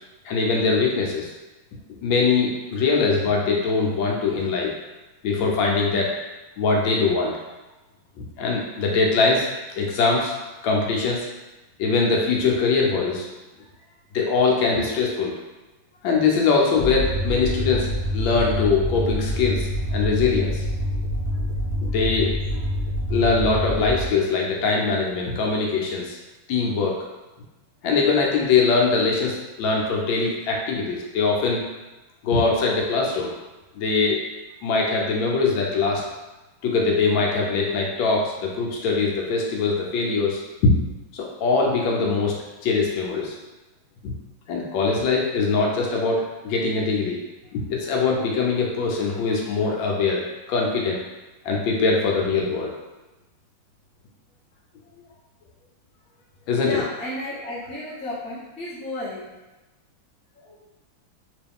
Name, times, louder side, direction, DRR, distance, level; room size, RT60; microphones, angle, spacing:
voice 1, 0.2-1.3 1.9-4.7 5.2-6.1 6.6-7.3 8.4-9.5 9.8-10.3 10.6-11.3 11.8-13.3 14.1-15.4 16.0-17.9 18.1-20.6 21.9-22.3 23.1-26.2 26.5-27.0 27.8-31.7 32.2-33.3 33.8-34.2 34.6-36.0 36.6-40.8 41.1-43.4 44.0-44.1 44.5-47.2 47.5-51.0 51.4-52.7 56.5-56.8, left 4 dB, 75° left, -1 dB, 1.3 m, -22 dB
sound 1, 16.8-24.1, equal, 50° right, 1.1 m, -26 dB
voice 2, 56.5-59.2 60.3-60.5, left 1 dB, 5° left, -11 dB, 0.6 m, -33 dB
3.0 x 3.0 x 3.5 m, 1.1 s
omnidirectional pair, 2.2 m